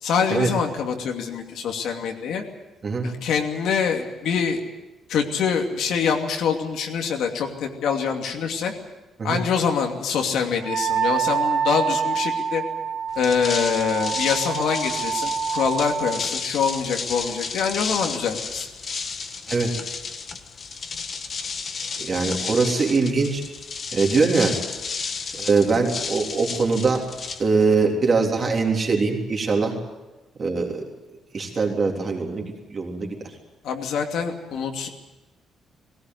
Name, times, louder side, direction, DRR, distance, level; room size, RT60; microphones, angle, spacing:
voice 1, 0.0-2.4 3.0-4.6 5.1-8.7 9.2-12.6 13.2-18.7 33.6-34.9, left 6 dB, 70° left, 3 dB, 2.7 m, -25 dB
Wind instrument woodwind instrument, 10.6-16.2, right 7 dB, 55° right, 2.1 m, -26 dB
sound 1, 13.1-27.9, left 5 dB, 35° left, 1.5 m, -32 dB
voice 2, 22.0-23.4 23.9-24.6 25.3-27.1 27.4-29.8 30.4-30.8 31.3-33.2, right 4 dB, 30° right, 1 dB, 3.5 m, -22 dB
19.5 x 18.0 x 9.4 m, 1.1 s
cardioid pair, 165°, 0 cm